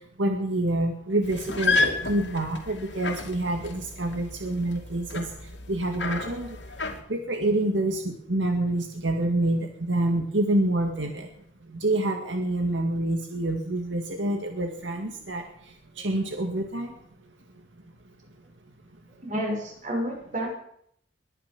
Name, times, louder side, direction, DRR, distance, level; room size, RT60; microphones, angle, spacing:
voice 1, 0.2-5.3 5.7-6.6 7.1-11.3 11.8-15.4 16.0-16.9, right 1 dB, 85° right, 3 dB, 2.1 m, -27 dB
sound 1, 1.2-7.0, left 3 dB, 75° left, 2.5 m, -31 dB
voice 2, 19.2-20.5, equal, 45° right, 0 dB, 6.0 m, -30 dB
21.5 x 10.5 x 6.1 m, 0.70 s
head